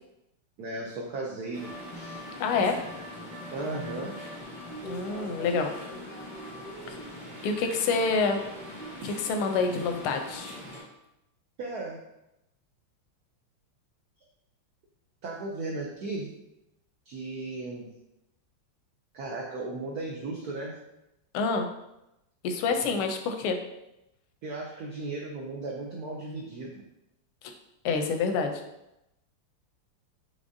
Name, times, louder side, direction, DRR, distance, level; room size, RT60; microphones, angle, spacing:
voice 1, 0.6-2.2 3.5-4.1 11.6-12.0 15.2-16.3 17.1-17.9 19.1-20.7 22.7-22.9 24.4-26.8, right 2 dB, 85° right, -1 dB, 0.8 m, -36 dB
sound 1, 1.5-10.8, equal, 20° right, 1.0 m, -41 dB
voice 2, 2.4-2.8 4.8-5.7 6.9-7.0 7.4-8.4 9.0-10.5 21.3-21.7 22.4-23.6 27.8-28.6, left 4 dB, 85° left, 5 dB, 1.5 m, -27 dB
5.1 x 3.3 x 2.6 m, 0.89 s
omnidirectional pair, 2.3 m